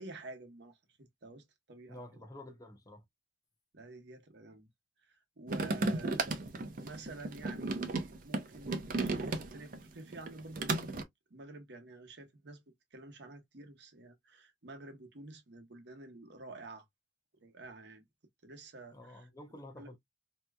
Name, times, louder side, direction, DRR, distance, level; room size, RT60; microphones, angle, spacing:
voice 1, 0.0-2.2 3.7-4.7 5.1-6.3 6.8-10.9 11.3-12.6 12.9-16.8 17.4-18.0 18.4-19.3 19.8-19.9, right 2 dB, 65° right, 0.9 m, -50 dB
voice 2, 1.9-3.0 5.7-6.0 18.9-20.0, left 1 dB, 20° left, 0.7 m, -50 dB
sound 1, 5.5-9.8 10.1-11.0, right 3 dB, 50° right, 0.6 m, -34 dB
3.3 x 2.9 x 2.2 m
head